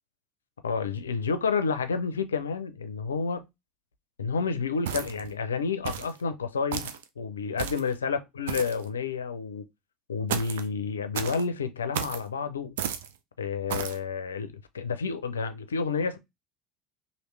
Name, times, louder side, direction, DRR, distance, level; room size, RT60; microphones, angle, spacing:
voice 1, 0.6-3.4 4.2-9.6 10.1-12.7 13.4-16.2, left 5 dB, 85° left, 0.4 m, -30 dB
sound 1, 4.9-5.3 5.9-6.2 6.7-7.0 7.6-7.9 8.5-8.8 10.3-10.7 11.1-11.4 11.9-12.2 12.8-13.1 13.7-14.0, right 9 dB, 75° right, 0.4 m, -33 dB
3.1 x 2.7 x 3.1 m
hypercardioid pair, 70°, 0 cm